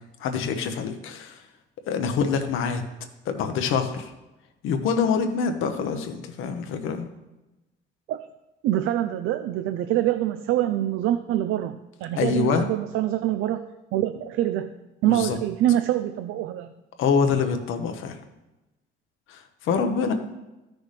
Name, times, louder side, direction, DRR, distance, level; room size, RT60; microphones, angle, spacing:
voice 1, 0.2-1.4 1.9-2.8 3.3-4.1 4.6-7.1 12.2-12.7 15.0-15.4 17.0-18.2 19.3-20.1, left 6 dB, 90° left, 6 dB, 1.0 m, -25 dB
voice 2, 8.6-14.7 15.0-16.7, right 13 dB, 90° right, 9 dB, 0.4 m, -25 dB
13.5 x 6.2 x 3.3 m, 1.0 s
cardioid pair, 90°, 20 cm